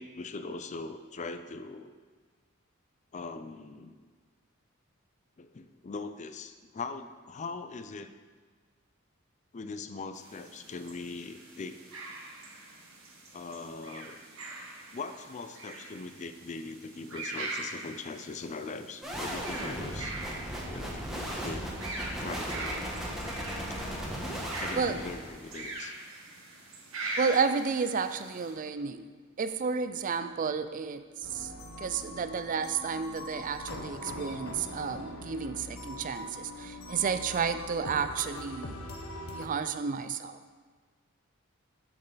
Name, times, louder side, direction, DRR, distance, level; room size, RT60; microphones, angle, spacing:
voice 1, 0.0-1.9 3.1-4.1 5.4-8.1 9.5-11.8 13.3-14.2 14.9-20.2 20.7-21.8 22.2-23.0 23.7-23.8 24.6-25.9, left 3 dB, 35° left, 10 dB, 0.4 m, -41 dB
sound 1, 10.1-28.5, right 2 dB, 75° right, 1.6 m, -42 dB
sound 2, 19.0-25.7, equal, ahead, 1.2 m, -37 dB
voice 2, 27.2-29.1 29.4-31.1 31.3-31.5 31.8-38.8 39.3-40.6, right 5 dB, 40° right, 11 dB, 0.4 m, -31 dB
sound 3, 31.2-39.5, left 1 dB, 80° left, 1.0 m, -42 dB
7.8 x 7.1 x 4.0 m, 1.5 s
head